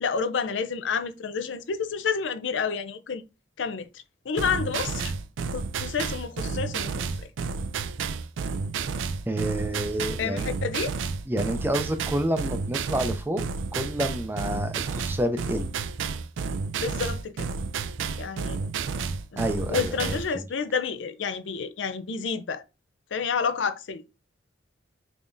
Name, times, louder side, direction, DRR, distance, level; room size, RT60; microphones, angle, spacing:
voice 1, 0.0-3.2 3.6-3.9 4.3-5.1 5.5-7.0 10.2-10.9 16.8-17.5 18.2-18.6 19.3-19.4 19.7-22.6 23.1-24.0, left 6 dB, 75° left, 0.5 m, -29 dB
sound 1, 4.4-20.3, right 5 dB, 90° right, 0.4 m, -31 dB
voice 2, 9.3-10.5 11.3-13.4 13.7-15.7 19.4-20.5, right 1 dB, 10° right, 0.4 m, -29 dB
3.7 x 3.4 x 2.6 m
head